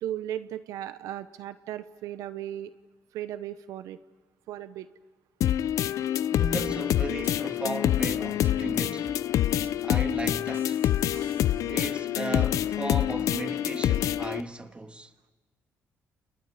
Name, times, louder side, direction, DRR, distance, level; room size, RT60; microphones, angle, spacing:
voice 1, 0.0-2.7 3.1-4.0 4.5-4.9 11.1-11.3, right 12 dB, 85° right, 0.9 m, -36 dB
sound 1, 5.4-14.4, left 11 dB, 75° left, 0.7 m, -26 dB
voice 2, 6.3-9.1 9.8-10.8 11.7-15.1, right 2 dB, 20° right, 1.9 m, -36 dB
sound 2, 6.6-11.7, right 5 dB, 45° right, 2.3 m, -50 dB
30.0 x 30.0 x 5.1 m
cardioid pair, 80°, 6 cm